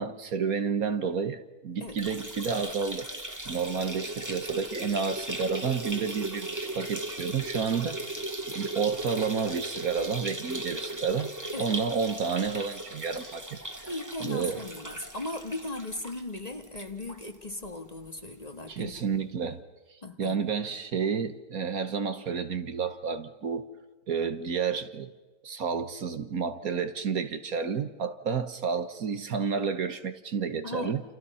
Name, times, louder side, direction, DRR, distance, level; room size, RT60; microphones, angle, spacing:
voice 1, 0.0-3.1 3.4-8.3 8.5-13.9 14.2-14.6 18.7-19.6 20.2-23.7 24.1-25.1 25.4-31.0, right 6 dB, 60° right, 1.6 m, -30 dB
sound 1, 1.9-17.3 17.6-17.7 18.0-18.1 19.1-19.2, right 1 dB, 10° right, 1.9 m, -37 dB
voice 2, 13.9-18.9 20.0-20.4 30.6-31.0, left 2 dB, 25° left, 1.9 m, -37 dB
29.0 x 29.0 x 5.6 m
omnidirectional pair, 1.8 m